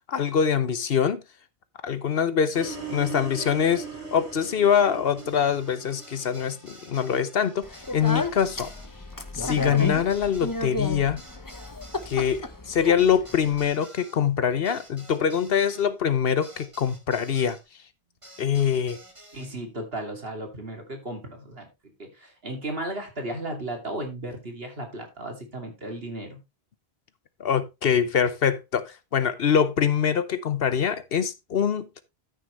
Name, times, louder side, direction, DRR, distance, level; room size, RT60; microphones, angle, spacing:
voice 1, 0.1-1.2 1.8-3.9 4.1-7.7 7.9-8.7 9.3-11.2 12.1-17.6 18.4-19.0 27.4-31.9, left 7 dB, 65° left, 1.0 m, -24 dB
sound 1, 2.5-6.7, right 5 dB, 75° right, 3.6 m, -39 dB
sound 2, 5.2-17.6 18.2-19.5, right 1 dB, 30° right, 2.4 m, -50 dB
Speech, 7.6-13.7, left 2 dB, 20° left, 0.9 m, -33 dB
voice 2, 19.3-26.4, right 1 dB, 60° right, 2.9 m, -35 dB
13.5 x 6.2 x 3.2 m
omnidirectional pair, 1.1 m